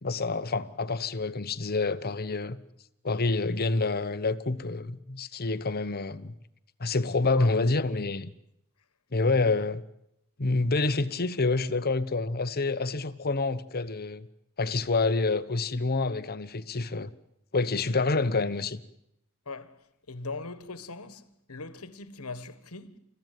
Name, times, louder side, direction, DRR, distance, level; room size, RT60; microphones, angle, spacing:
voice 1, 0.0-2.6 3.0-6.3 6.8-8.3 9.1-9.8 10.4-14.3 14.6-17.1 17.5-18.8, left 3 dB, 45° left, 1.0 m, -27 dB
voice 2, 19.4-19.8 20.1-21.2 21.5-23.0, left 3 dB, 75° left, 1.5 m, -40 dB
29.5 x 14.5 x 9.3 m
head